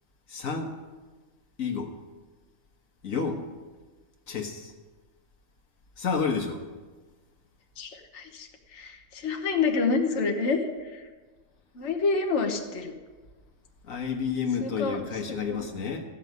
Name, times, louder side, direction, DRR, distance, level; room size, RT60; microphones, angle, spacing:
voice 1, 0.3-0.7 1.6-1.9 3.0-3.4 4.3-4.7 6.0-6.6 13.9-16.0, left 5 dB, 90° left, 3 dB, 1.8 m, -30 dB
voice 2, 7.8-11.0 11.7-12.9 14.6-15.6, left 4 dB, 60° left, 3 dB, 1.5 m, -28 dB
14.5 x 6.5 x 9.4 m, 1.3 s
omnidirectional pair, 1.4 m